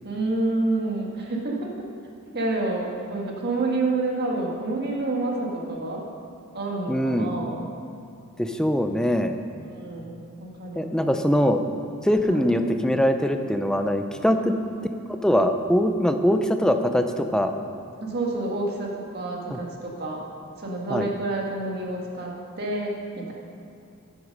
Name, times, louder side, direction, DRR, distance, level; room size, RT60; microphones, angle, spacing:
voice 1, 0.0-1.9 2.3-6.1 6.5-7.6 9.7-10.9 12.2-12.5 14.3-14.5 18.0-20.2 20.6-23.3, right 2 dB, 50° right, -1 dB, 1.8 m, -28 dB
voice 2, 6.9-7.3 8.4-9.4 10.8-11.6 12.0-14.5 15.1-17.5 19.5-19.6 20.9-21.1, equal, 5° left, 6 dB, 0.5 m, -22 dB
11.0 x 8.1 x 5.4 m, 2.6 s
head